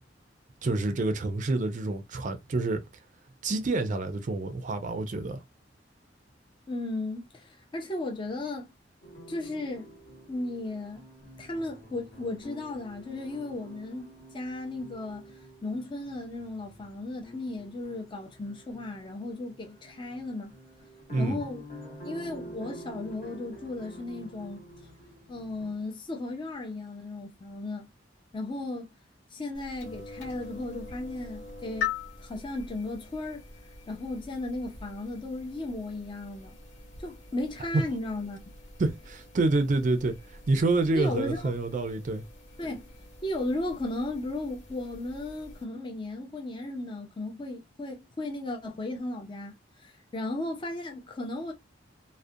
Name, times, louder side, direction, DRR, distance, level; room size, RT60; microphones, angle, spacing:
voice 1, 0.6-2.8 3.4-5.4 21.1-21.4 37.7-37.8 38.8-42.2, right 2 dB, 45° right, 0.4 m, -27 dB
voice 2, 6.7-8.7 9.3-9.9 10.3-11.1 11.4-20.6 21.2-21.6 22.0-24.7 25.3-27.9 28.3-28.9 29.3-31.9 32.2-36.6 37.0-38.4 40.9-41.5 42.6-42.9 43.2-51.5, left 2 dB, 25° left, 0.4 m, -35 dB
sound 1, 9.0-25.7, equal, 45° left, 0.9 m, -48 dB
sound 2, 29.5-45.6, left 6 dB, 85° left, 0.8 m, -43 dB
2.4 x 2.1 x 2.6 m
head